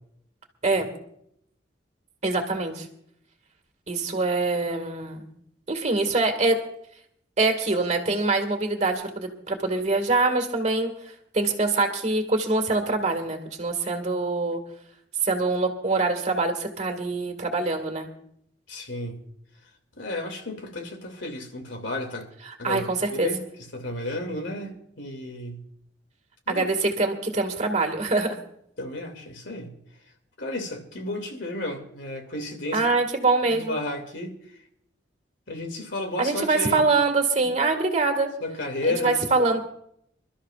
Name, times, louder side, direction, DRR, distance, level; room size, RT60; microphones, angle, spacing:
voice 1, 2.2-2.9 3.9-5.2 5.7-6.6 7.4-10.9 11.3-14.6 15.2-18.1 22.5-23.3 26.5-28.4 32.7-33.8 36.2-38.3 38.9-39.6, right 3 dB, 35° right, 2.0 m, -24 dB
voice 2, 18.7-19.2 20.0-22.3 22.6-23.4 23.7-25.6 26.5-26.7 28.8-29.7 30.4-32.9 33.4-34.4 35.5-36.8 38.4-39.2, left 2 dB, 75° left, 2.5 m, -32 dB
28.0 x 13.0 x 2.5 m
head